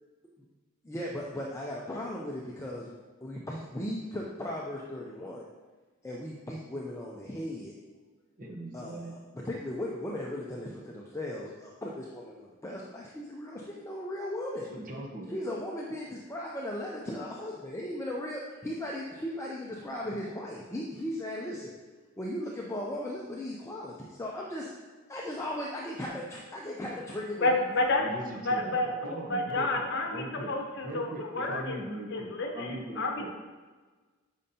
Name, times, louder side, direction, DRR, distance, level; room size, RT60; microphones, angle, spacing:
voice 1, 0.8-2.9 3.2-5.5 6.0-7.7 8.7-14.7 15.3-21.7 22.2-24.7 25.1-27.5, left 1 dB, 15° left, -3 dB, 0.4 m, -37 dB
voice 2, 8.4-9.1 14.7-15.4 28.0-29.8 30.1-30.5 30.8-33.3, right 1 dB, 40° right, 0 dB, 0.9 m, -40 dB
voice 3, 27.4-28.0 28.5-28.9 29.3-31.8 32.1-33.3, left 2 dB, 50° left, 2 dB, 0.8 m, -29 dB
8.8 x 5.4 x 2.8 m, 1.3 s
head